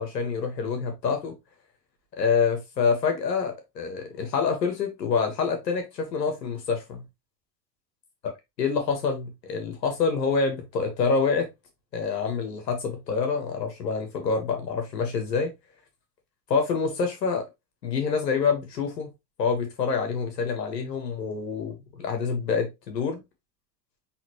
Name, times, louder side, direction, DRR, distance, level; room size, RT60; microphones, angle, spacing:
voice 1, 0.0-1.3 2.2-7.0 8.6-11.5 11.9-15.5 16.5-17.4 17.8-19.1 19.4-23.2, left 5 dB, 90° left, 1.7 m, -26 dB
4.3 x 3.6 x 3.1 m
hypercardioid pair, 80°, 48 cm